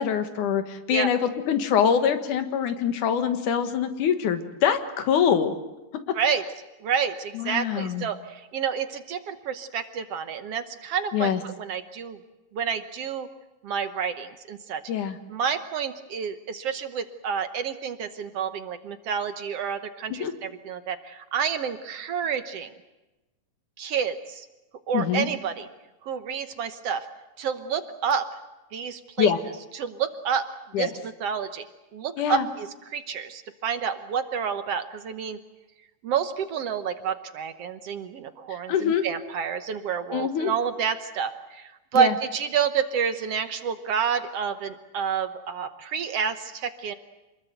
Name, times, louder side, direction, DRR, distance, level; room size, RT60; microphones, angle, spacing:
voice 1, 0.0-5.6 7.3-8.1 11.1-11.4 14.9-15.2 20.1-20.3 24.9-25.3 29.2-29.4 30.7-30.9 32.2-32.5 38.5-39.0 40.1-40.5 41.9-42.1, left 8 dB, 85° left, 8 dB, 3.0 m, -24 dB
voice 2, 6.8-12.2 12.5-13.3 13.6-14.8 15.3-22.7 23.8-24.5 24.9-25.7 26.0-27.1 27.4-28.3 28.7-29.3 29.7-30.5 30.8-31.6 31.9-35.4 36.0-46.9, right 7 dB, 65° right, 9 dB, 1.8 m, -29 dB
27.0 x 20.5 x 8.0 m, 1.0 s
omnidirectional pair, 3.5 m